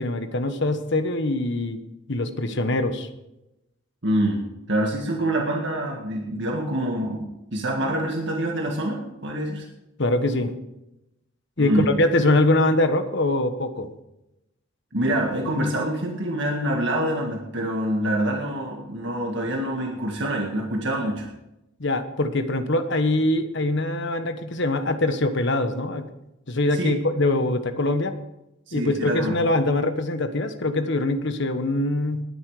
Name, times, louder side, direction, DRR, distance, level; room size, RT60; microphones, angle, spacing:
voice 1, 0.0-1.8 2.1-3.1 10.0-10.5 11.6-13.9 21.8-26.1 26.5-28.1 28.7-32.2, left 2 dB, 60° left, 9 dB, 1.3 m, -23 dB
voice 2, 4.0-9.7 11.6-11.9 14.9-21.3 26.7-27.0 28.7-29.3, right 1 dB, 60° right, 0 dB, 1.8 m, -26 dB
19.5 x 9.9 x 4.9 m, 0.91 s
head